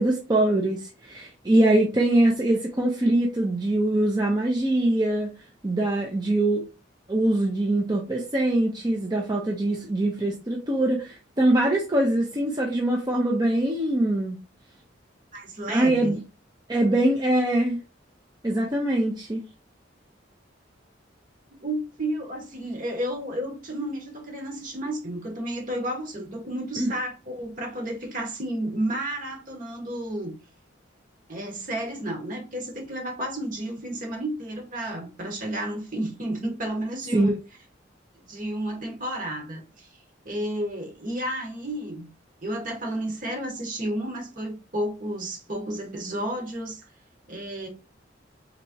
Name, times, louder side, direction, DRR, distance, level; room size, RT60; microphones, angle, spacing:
voice 1, 0.0-5.3 5.6-6.6 7.1-14.3 15.7-16.2 16.7-17.8 18.4-19.4 26.8-26.9 37.1-37.3, right 1 dB, 20° right, 0.6 m, -23 dB
voice 2, 15.3-16.1 21.5-30.3 31.3-37.4 38.1-39.9 40.2-42.1 42.4-46.8 47.3-47.7, right 1 dB, 45° right, 1.4 m, -32 dB
4.0 x 3.4 x 2.8 m
head